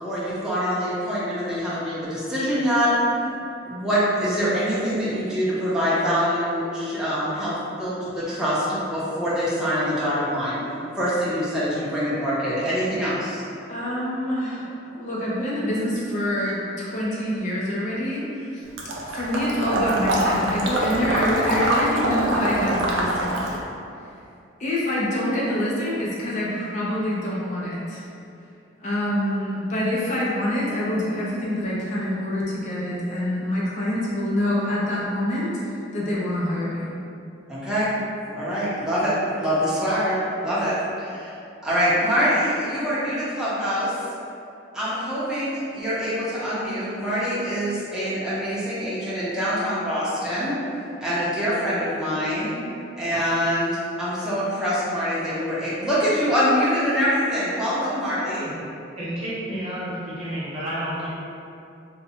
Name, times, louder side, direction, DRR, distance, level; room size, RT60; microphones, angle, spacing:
voice 1, 0.0-3.2 3.7-7.5 7.8-10.6 11.0-13.4 37.5-37.9 38.3-41.3 41.6-43.9 44.7-50.5 51.0-52.5 53.0-58.5, equal, 5° right, -11 dB, 0.6 m, -24 dB
voice 2, 13.7-18.6 19.0-23.5 24.6-28.0 28.8-36.9, left 1 dB, 40° left, -6 dB, 0.5 m, -26 dB
Water / Liquid, 18.8-23.6, right 1 dB, 80° right, 0.5 m, -24 dB
voice 3, 59.0-61.1, right 1 dB, 30° right, -10 dB, 0.9 m, -30 dB
2.7 x 2.1 x 4.1 m, 2.6 s
head